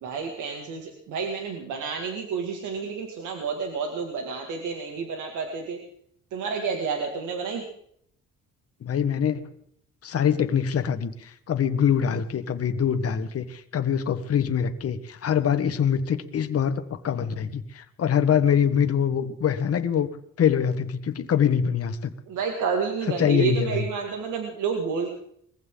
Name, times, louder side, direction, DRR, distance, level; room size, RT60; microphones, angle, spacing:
voice 1, 0.0-5.8 6.3-7.6 22.3-25.1, right 5 dB, 85° right, 2 dB, 2.3 m, -30 dB
voice 2, 8.8-9.5 10.0-20.1 20.4-22.1 23.2-23.8, left 8 dB, 50° left, 8 dB, 1.4 m, -24 dB
21.5 x 15.5 x 3.9 m, 0.68 s
cardioid pair, 90°, 30 cm